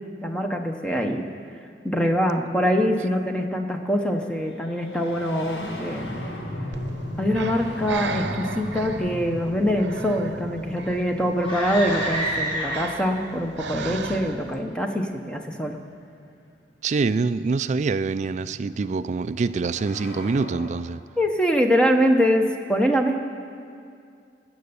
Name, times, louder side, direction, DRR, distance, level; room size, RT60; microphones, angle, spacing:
voice 1, 0.2-1.3 1.8-6.2 7.2-15.8 21.2-23.2, equal, 5° left, 3 dB, 0.8 m, -24 dB
sound 1, 4.0-14.6 15.8-15.9 17.0-20.7, equal, 70° left, 1.9 m, -37 dB
Breathing, 6.7-14.6, right 4 dB, 85° right, 0.8 m, -36 dB
sound 2, 11.4-13.1, equal, 30° left, 3.0 m, -28 dB
voice 2, 16.8-21.0, right 4 dB, 40° right, 14 dB, 0.3 m, -25 dB
19.0 x 7.9 x 7.0 m, 2.3 s
head